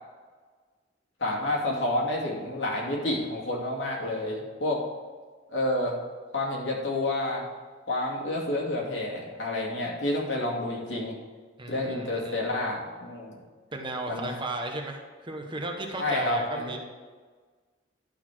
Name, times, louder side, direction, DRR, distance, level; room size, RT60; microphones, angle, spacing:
voice 1, 1.2-4.8 5.5-6.0 6.3-7.5 7.9-11.1 11.7-13.4 14.1-14.3 16.0-16.8, left 1 dB, 75° left, -3 dB, 2.4 m, -29 dB
voice 2, 11.6-12.6 13.7-16.8, right 2 dB, 25° right, 2 dB, 1.0 m, -35 dB
11.5 x 4.2 x 6.2 m, 1.4 s
head